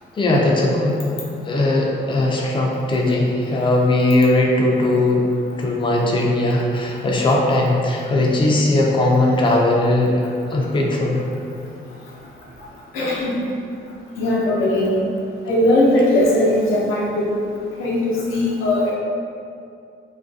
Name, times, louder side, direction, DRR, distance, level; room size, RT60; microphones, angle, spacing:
voice 1, 0.1-1.0 1.5-5.3 5.6-10.2 10.5-11.2, left 2 dB, 25° left, -1 dB, 0.4 m, -18 dB
voice 2, 12.9-13.3 14.2-15.0 15.5-17.4 17.8-18.9, left 1 dB, 80° left, -4 dB, 0.6 m, -19 dB
2.4 x 2.2 x 2.6 m, 2.4 s
cardioid pair, 90°, 20 cm